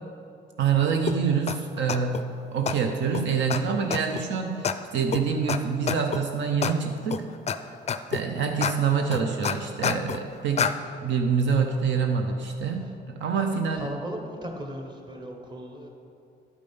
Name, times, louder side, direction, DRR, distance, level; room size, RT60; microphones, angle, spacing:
voice 1, 0.6-7.3 8.1-10.7 11.0-13.9, right 6 dB, 70° right, 4 dB, 0.7 m, -26 dB
sound 1, 1.1-1.2 1.5-1.6 1.9-2.2 2.7-2.8 3.1-3.2 3.5-3.6 3.9-4.2 4.6-4.7 5.1-5.2 5.5-5.6 5.9-6.2 6.6-6.7 7.1-7.6 7.9-8.2 8.6-8.7 9.1-10.2 10.6-10.7, left 7 dB, 35° left, 0.4 m, -27 dB
voice 2, 13.7-15.9, equal, 20° right, 2 dB, 1.4 m, -37 dB
11.0 x 5.1 x 5.4 m, 2.6 s
cardioid pair, 90°, 20 cm